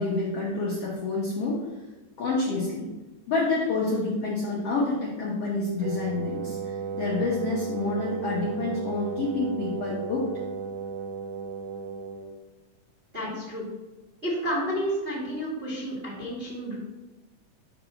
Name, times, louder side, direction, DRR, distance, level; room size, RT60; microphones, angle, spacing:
voice 1, 0.0-1.7 2.2-2.9 3.3-10.3, left 3 dB, 70° left, -5 dB, 1.5 m, -28 dB
Wind instrument woodwind instrument, 5.8-12.4, right 5 dB, 85° right, 2.2 m, -34 dB
voice 2, 13.1-13.6 14.2-16.8, equal, 30° right, -6 dB, 1.2 m, -30 dB
4.8 x 4.0 x 5.7 m, 1.1 s
omnidirectional pair, 3.9 m